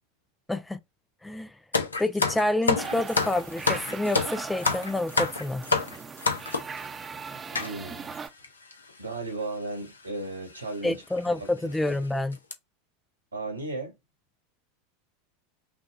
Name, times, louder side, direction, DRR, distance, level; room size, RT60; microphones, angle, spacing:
voice 1, 0.5-0.8 1.2-1.5 2.0-5.6 10.8-12.4, left 2 dB, 5° left, 0.3 m, -28 dB
sound 1, 1.7-6.8 7.6-7.7 8.4-8.5 8.7-8.9 9.9-10.1 10.5-10.7 11.2-11.3 11.7-11.9 12.3-12.5, left 4 dB, 75° left, 0.7 m, -27 dB
sound 2, 2.8-8.3, right 5 dB, 20° right, 0.7 m, -39 dB
voice 2, 7.5-8.2 9.0-11.0 11.4-11.5 11.9-12.0 13.3-13.9, right 2 dB, 85° right, 1.8 m, -35 dB
5.9 x 2.3 x 2.5 m
figure-of-eight pair, 85°, 0 cm